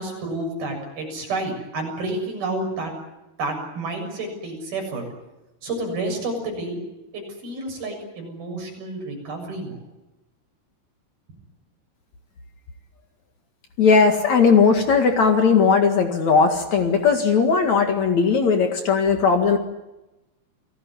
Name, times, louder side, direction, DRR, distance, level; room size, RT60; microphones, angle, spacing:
voice 1, 0.0-2.9 3.4-5.0 5.6-6.8 7.1-9.8, right 2 dB, 65° right, 2 dB, 8.8 m, -30 dB
voice 2, 13.8-19.6, left 5 dB, 55° left, 5 dB, 2.9 m, -18 dB
29.0 x 18.5 x 9.8 m, 1.0 s
omnidirectional pair, 4.5 m